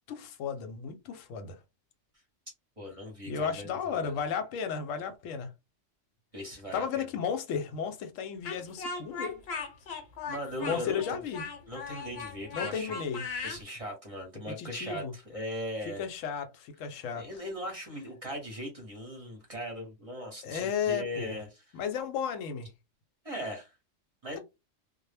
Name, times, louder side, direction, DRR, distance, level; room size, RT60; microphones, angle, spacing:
voice 1, 0.1-1.6 3.3-5.5 6.7-9.4 10.6-11.4 12.5-13.2 14.6-15.1 16.0-17.3 20.4-21.4 21.7-22.7, left 7 dB, 85° left, 0.9 m, -34 dB
voice 2, 2.8-4.2 6.3-7.1 10.3-11.2 11.7-13.0 13.4-16.1 17.1-21.6 23.2-23.7 24.2-24.4, equal, 35° right, 0.7 m, -39 dB
Speech, 8.4-13.6, left 4 dB, 60° left, 0.9 m, -38 dB
2.1 x 2.0 x 3.2 m
omnidirectional pair, 1.3 m